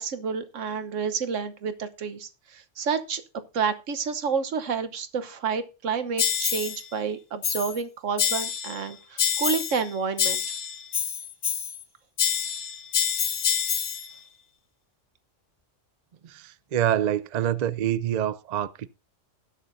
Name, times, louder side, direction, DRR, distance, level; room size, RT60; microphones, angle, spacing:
voice 1, 0.0-3.2 3.5-10.4, right 6 dB, 80° right, 1.4 m, -29 dB
sound 1, 6.2-6.8 7.4-7.8 8.2-8.8 9.2-9.8 10.2-11.8 12.2-14.1, left 7 dB, 70° left, 1.2 m, -27 dB
voice 2, 16.2-18.9, right 11 dB, 55° right, 0.5 m, -26 dB
19.0 x 6.6 x 2.6 m
omnidirectional pair, 1.3 m